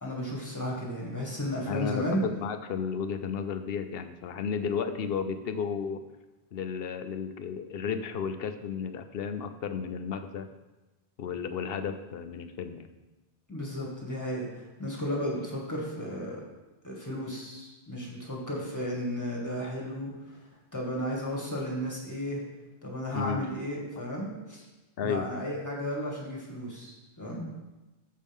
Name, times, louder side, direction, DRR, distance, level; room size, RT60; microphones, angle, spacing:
voice 1, 0.0-2.2 13.5-16.4 16.8-20.4 20.7-22.4 22.8-24.6 25.0-27.4, equal, 15° left, -3 dB, 2.1 m, -34 dB
voice 2, 1.7-6.0 6.5-10.5 11.2-12.9 23.1-23.4 25.0-25.3, left 6 dB, 65° left, 9 dB, 0.9 m, -33 dB
13.5 x 5.4 x 3.6 m, 1.1 s
omnidirectional pair, 1.1 m